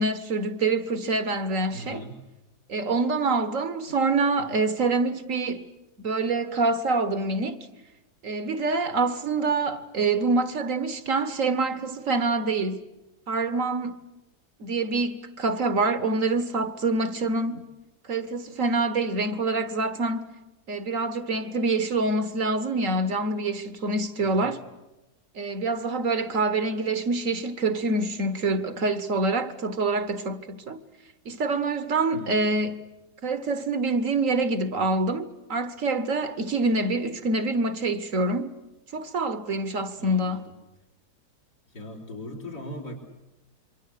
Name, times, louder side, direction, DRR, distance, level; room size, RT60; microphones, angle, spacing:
voice 1, 0.0-2.0 2.7-5.7 6.0-7.7 8.2-12.8 13.3-14.0 14.6-17.6 18.0-20.3 20.7-24.6 25.3-30.8 31.2-32.8 33.2-38.5 38.9-40.5, right 3 dB, 55° right, 1.7 m, -26 dB
voice 2, 1.7-2.2 24.2-24.5 32.1-32.6 40.0-40.4 41.7-43.0, equal, 85° left, 4.8 m, -39 dB
27.0 x 23.5 x 8.5 m
omnidirectional pair, 1.7 m